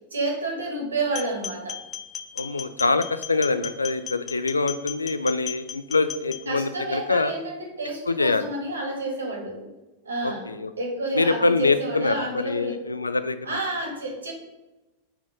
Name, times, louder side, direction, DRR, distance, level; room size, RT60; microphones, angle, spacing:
voice 1, 0.1-1.8 6.5-9.7 10.0-10.5 10.8-12.8 13.4-14.3, right 2 dB, 75° right, 0 dB, 1.9 m, -30 dB
sound 1, 1.1-6.4, left 8 dB, 25° left, 0.5 m, -36 dB
voice 2, 2.4-7.3 8.1-8.5 10.2-10.7 11.1-13.6, left 3 dB, 80° left, 12 dB, 0.3 m, -24 dB
5.7 x 4.5 x 5.4 m, 1.0 s
figure-of-eight pair, 90°, 0 cm